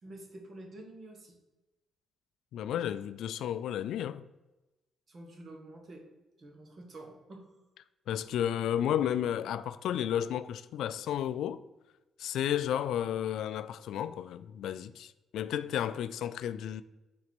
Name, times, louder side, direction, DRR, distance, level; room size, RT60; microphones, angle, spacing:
voice 1, 0.0-1.4 5.1-6.0 6.4-7.5, right 1 dB, 45° right, 1.6 m, -48 dB
voice 2, 2.5-4.3 8.1-11.6 12.2-16.8, left 10 dB, 80° left, 0.3 m, -32 dB
5.9 x 4.0 x 6.1 m
cardioid pair, 90°, 0 cm